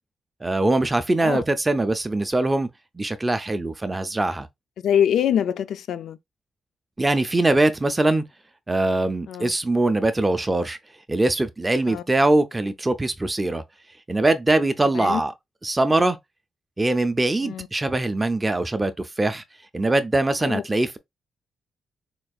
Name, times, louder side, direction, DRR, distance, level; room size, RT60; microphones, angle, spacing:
voice 1, 0.4-2.7 2.9-4.5 7.0-8.2 8.7-10.8 11.1-13.6 14.1-15.3 15.6-16.2 16.8-19.4 19.7-21.0, right 2 dB, 15° right, 0.4 m, -22 dB
voice 2, 4.8-6.2 9.3-9.5 11.9-12.0 14.9-15.2 17.4-17.7 20.4-20.6, left 9 dB, 75° left, 0.4 m, -24 dB
4.3 x 2.4 x 2.3 m
wide cardioid pair, 165°, 0 cm